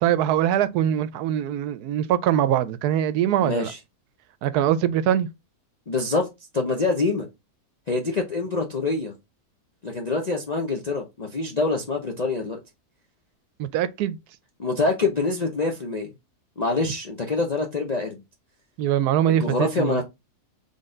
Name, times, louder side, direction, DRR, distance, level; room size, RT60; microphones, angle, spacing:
voice 1, 0.0-3.7 4.4-5.3 13.6-14.2 18.8-20.0, right 10 dB, 80° right, 1.1 m, -22 dB
voice 2, 3.4-3.8 5.9-6.3 6.5-7.3 7.9-9.2 9.8-12.6 14.6-16.1 16.6-18.2 19.3-20.0, left 3 dB, 50° left, 0.4 m, -25 dB
4.1 x 3.4 x 3.7 m
omnidirectional pair, 1.7 m